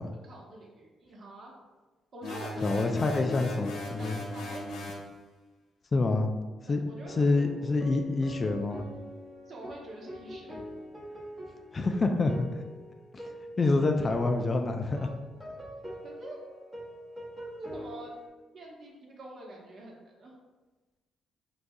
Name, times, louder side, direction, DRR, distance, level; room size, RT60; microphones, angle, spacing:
voice 1, 0.1-1.5 2.1-2.9 3.8-4.7 6.7-7.5 9.5-10.7 16.0-16.4 17.4-18.1 18.5-20.4, right 2 dB, 50° right, -2 dB, 1.0 m, -46 dB
sound 1, 2.2-5.1, left 1 dB, 80° left, 0.9 m, -37 dB
voice 2, 2.6-4.2 5.9-6.3 6.7-6.8 7.1-8.9 11.7-12.6 13.1-13.2 13.6-15.1, left 3 dB, 35° left, 5 dB, 0.3 m, -27 dB
sound 2, 7.0-18.3, equal, 15° right, 1.0 m, -44 dB
4.8 x 2.3 x 2.6 m, 1.2 s
cardioid pair, 90°, 0 cm